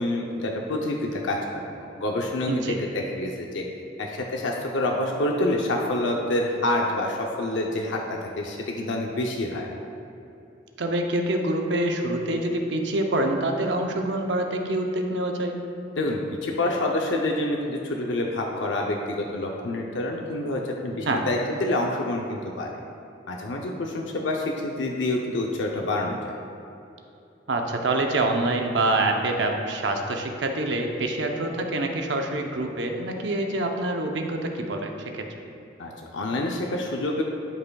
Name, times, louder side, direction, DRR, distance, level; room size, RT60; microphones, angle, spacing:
voice 1, 0.0-1.6 2.0-3.6 4.0-9.7 16.0-22.7 23.3-26.3 35.8-37.2, left 1 dB, 90° left, 0 dB, 0.6 m, -27 dB
voice 2, 2.5-2.8 10.8-15.6 21.1-21.2 27.5-35.3, right 2 dB, 70° right, 3 dB, 0.7 m, -26 dB
12.0 x 5.5 x 2.3 m, 2.8 s
head